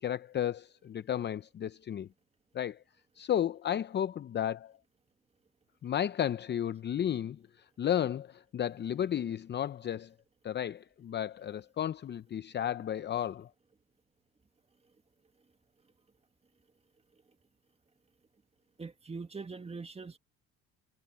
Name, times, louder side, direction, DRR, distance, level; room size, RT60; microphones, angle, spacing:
voice 1, 0.0-2.1 2.5-2.8 3.2-4.7 5.8-10.1 10.4-13.5, left 10 dB, 35° left, 0.7 m, -33 dB
voice 2, 18.8-20.2, right 4 dB, 20° right, 1.9 m, -42 dB
supercardioid pair, 85°, 30 cm